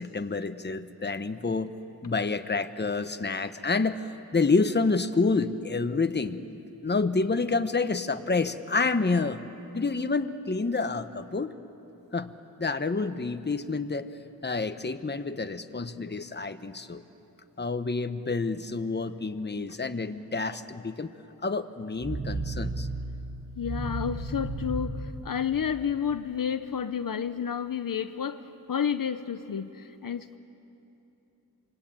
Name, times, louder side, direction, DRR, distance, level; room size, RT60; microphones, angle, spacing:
voice 1, 0.0-1.7 2.0-6.4 6.8-9.4 9.7-11.5 12.1-12.3 12.6-14.1 14.4-17.0 17.6-21.1 21.4-22.9, left 3 dB, 30° left, 10 dB, 1.1 m, -28 dB
sound 1, 22.0-26.0, right 2 dB, 85° right, 4.6 m, -34 dB
voice 2, 23.6-30.4, left 8 dB, 60° left, 11 dB, 0.8 m, -31 dB
27.0 x 24.5 x 8.9 m, 3.0 s
wide cardioid pair, 90°, 37 cm